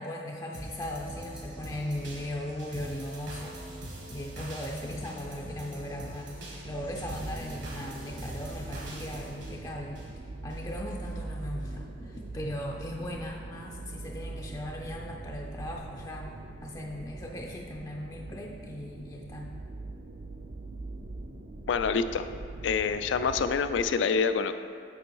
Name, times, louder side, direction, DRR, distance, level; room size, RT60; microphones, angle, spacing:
voice 1, 0.0-3.6 4.1-6.3 6.6-10.0 10.4-16.3 16.6-19.6, left 1 dB, 20° left, 0 dB, 0.4 m, -38 dB
sound 1, 0.5-10.6 11.0-11.1, right 1 dB, 70° right, 1.7 m, -42 dB
sound 2, 6.6-23.9, right 2 dB, 50° right, 0.5 m, -42 dB
voice 2, 21.7-22.3 22.6-24.5, left 5 dB, 85° left, 11 dB, 0.4 m, -26 dB
7.7 x 5.4 x 4.6 m, 2.2 s
head